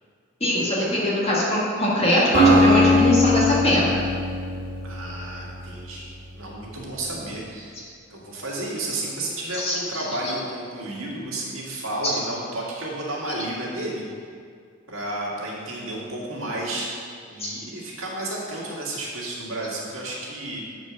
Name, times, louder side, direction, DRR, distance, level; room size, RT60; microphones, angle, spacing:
voice 1, 0.4-3.9 9.5-9.8 10.2-10.3 12.0-12.2 17.4-17.5, equal, 30° left, -5 dB, 1.8 m, -21 dB
Acoustic guitar, 2.3-6.4, left 1 dB, 55° right, 2.3 m, -21 dB
voice 2, 4.8-7.8 8.1-14.1 14.9-16.9 17.2-20.6, right 1 dB, 75° right, -4 dB, 2.0 m, -32 dB
8.5 x 5.1 x 6.2 m, 2.2 s
head